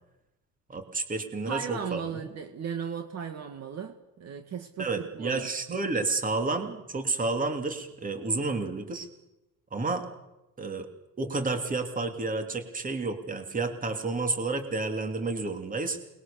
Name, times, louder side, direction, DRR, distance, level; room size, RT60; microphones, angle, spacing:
voice 1, 0.7-2.3 4.8-9.1 9.7-10.1 10.6-10.9 11.2-16.0, right 3 dB, 25° right, 6 dB, 3.0 m, -30 dB
voice 2, 1.5-5.5, right 7 dB, 45° right, 6 dB, 2.2 m, -36 dB
28.5 x 21.5 x 7.1 m, 0.95 s
cardioid pair, 145°, 35 cm